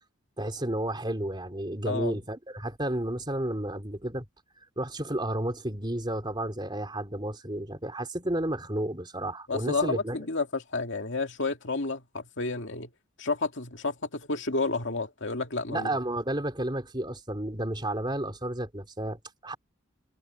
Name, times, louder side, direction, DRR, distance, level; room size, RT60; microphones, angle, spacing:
voice 1, 0.4-4.3 4.8-10.2 15.7-19.6, right 1 dB, 25° right, 3.7 m, -32 dB
voice 2, 1.9-2.2 9.5-12.9 13.2-15.9, left 3 dB, 65° left, 2.5 m, -31 dB
head